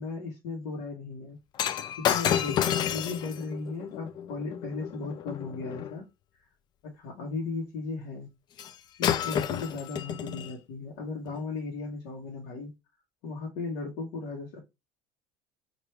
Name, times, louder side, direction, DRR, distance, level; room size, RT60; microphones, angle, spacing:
voice 1, 0.0-1.4 2.0-6.0 6.3-6.5 6.8-8.3 9.0-12.7 13.2-14.6, left 4 dB, 70° left, 1.1 m, -36 dB
Shatter, 1.6-5.9 8.6-8.8 9.0-10.5 11.3-11.4, left 9 dB, 35° left, 0.3 m, -30 dB
3.2 x 2.5 x 4.4 m
cardioid pair, 140°, 12 cm